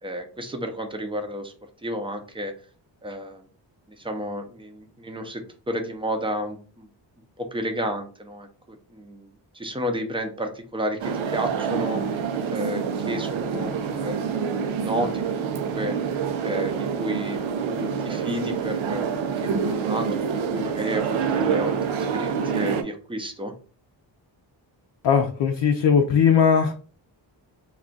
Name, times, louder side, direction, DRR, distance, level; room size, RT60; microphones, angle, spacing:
voice 1, 0.0-1.5 1.8-2.5 3.0-3.5 3.9-6.9 7.4-9.3 9.5-12.0 12.5-14.3 14.8-16.0 16.4-17.4 17.7-23.5, equal, 10° right, 5 dB, 0.6 m, -31 dB
sound 1, 11.0-22.8, right 6 dB, 85° right, 0.6 m, -27 dB
voice 2, 25.0-26.7, left 7 dB, 65° left, 3 dB, 0.6 m, -19 dB
2.4 x 2.4 x 3.8 m, 0.39 s
cardioid pair, 75°, 46 cm